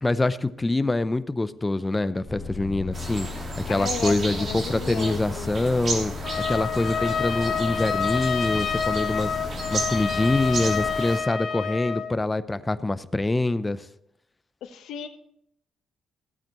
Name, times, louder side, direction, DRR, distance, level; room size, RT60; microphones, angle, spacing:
voice 1, 0.0-6.1 6.5-13.8, left 2 dB, 15° left, 14 dB, 0.5 m, -25 dB
sound 1, 2.3-11.0, left 3 dB, ahead, 2.3 m, -36 dB
sound 2, 2.9-11.2, right 3 dB, 55° right, 2.9 m, -34 dB
voice 2, 3.7-5.5 14.6-15.1, left 8 dB, 80° left, 8 dB, 1.1 m, -34 dB
Trumpet, 6.2-12.1, left 6 dB, 55° left, 1.4 m, -28 dB
15.0 x 8.8 x 3.0 m, 0.77 s
cardioid pair, 90°, 0 cm